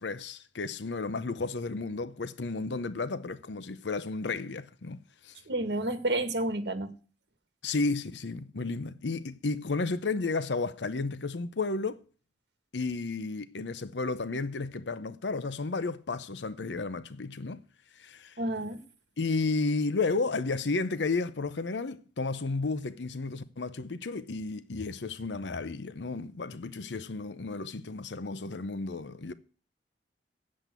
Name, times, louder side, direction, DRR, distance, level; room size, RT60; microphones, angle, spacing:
voice 1, 0.0-5.0 5.2-5.3 7.6-12.0 12.7-17.6 18.0-18.3 19.2-29.3, left 3 dB, 90° left, 0.8 m, -32 dB
voice 2, 5.5-6.9 18.4-18.8, right 1 dB, 70° right, 1.7 m, -30 dB
8.7 x 7.6 x 8.1 m
head